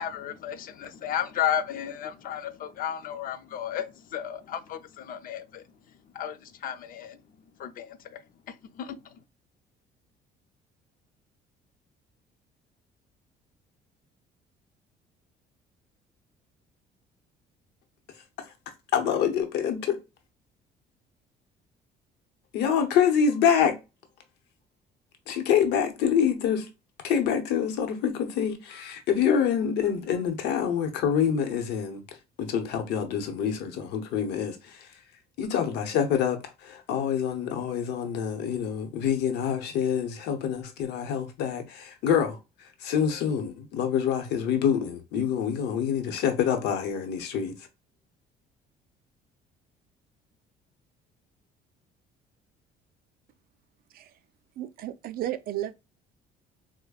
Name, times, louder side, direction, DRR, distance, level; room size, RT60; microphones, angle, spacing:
voice 1, 0.0-3.9 4.1-5.6 6.1-7.2 7.6-8.2 8.5-9.0, left 9 dB, 55° left, 0.5 m, -33 dB
voice 2, 18.9-20.0 22.5-23.8 25.3-26.7 27.0-32.0 32.4-34.9 35.4-47.5, left 8 dB, 85° left, 0.9 m, -26 dB
voice 3, 54.6-55.7, right 13 dB, 60° right, 0.4 m, -33 dB
4.9 x 2.1 x 2.3 m
cardioid pair, 110°, 17 cm